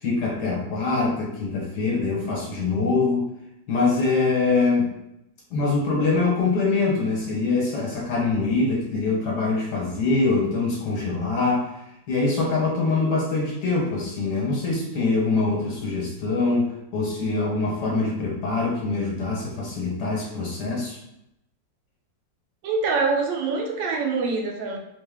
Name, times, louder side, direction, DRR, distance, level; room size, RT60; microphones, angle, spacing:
voice 1, 0.0-3.3 3.7-4.9 5.5-11.7 12.1-21.0, left 3 dB, 65° left, -2 dB, 1.5 m, -24 dB
voice 2, 22.6-24.8, right 4 dB, 85° right, 1 dB, 1.4 m, -25 dB
3.7 x 2.1 x 3.4 m, 0.83 s
omnidirectional pair, 2.0 m